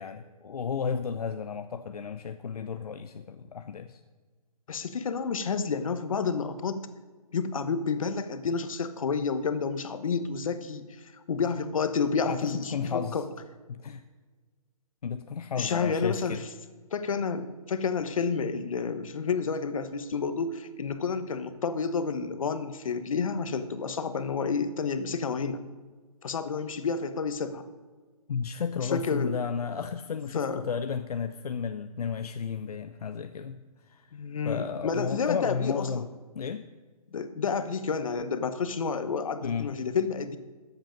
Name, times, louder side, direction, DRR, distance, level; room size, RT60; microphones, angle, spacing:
voice 1, 0.0-4.0 12.2-13.2 13.7-14.0 15.0-16.4 28.3-33.6 33.9-34.1 34.4-36.1 36.3-36.6 39.4-39.7, left 6 dB, 80° left, 9 dB, 0.6 m, -33 dB
voice 2, 4.7-6.9 7.3-13.3 15.6-16.4 16.9-25.6 26.2-27.7 28.8-29.3 30.3-30.7 34.1-36.0 37.1-40.4, left 5 dB, 60° left, 10 dB, 1.1 m, -30 dB
14.0 x 8.0 x 5.2 m, 1.4 s
hypercardioid pair, 160°, 19 cm